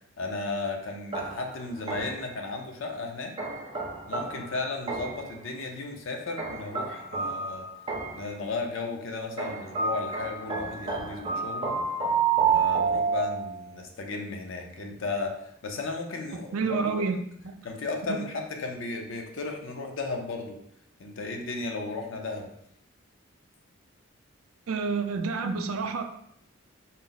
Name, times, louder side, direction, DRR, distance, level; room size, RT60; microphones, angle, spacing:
voice 1, 0.2-3.3 4.1-7.7 8.1-11.8 12.3-16.9 17.6-20.6 21.0-22.5, left 3 dB, 65° left, 3 dB, 0.6 m, -34 dB
sound 1, 1.1-2.3 3.4-5.3 6.4-8.3 9.4-13.7, right 5 dB, 25° right, 0.5 m, -29 dB
voice 2, 16.5-17.2 17.4-17.5 18.1-18.2 24.7-26.0, right 4 dB, 80° right, 6 dB, 0.4 m, -28 dB
4.0 x 2.0 x 3.9 m, 0.73 s
head